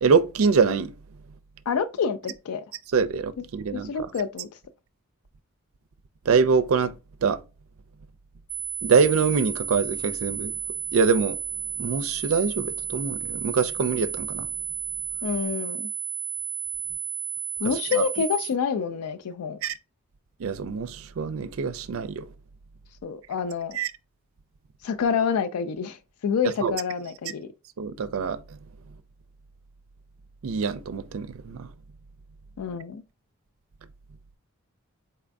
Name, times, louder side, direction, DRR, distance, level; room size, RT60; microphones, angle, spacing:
voice 1, 0.0-0.9 2.9-3.9 6.3-7.0 7.2-7.4 8.8-10.5 10.9-11.4 11.8-14.5 17.6-18.0 19.6-19.7 20.4-22.2 23.7-23.9 26.6-26.8 27.8-28.4 30.4-31.7, right 5 dB, 70° right, 0.4 m, -24 dB
voice 2, 1.7-2.7 3.4-3.5 3.7-4.5 15.2-15.9 17.6-19.6 23.0-23.8 24.8-27.5 32.6-33.0, left 6 dB, 85° left, 0.4 m, -27 dB
sound 1, 8.5-18.5, right 7 dB, 65° left, 2.1 m, -32 dB
4.3 x 2.5 x 3.3 m
head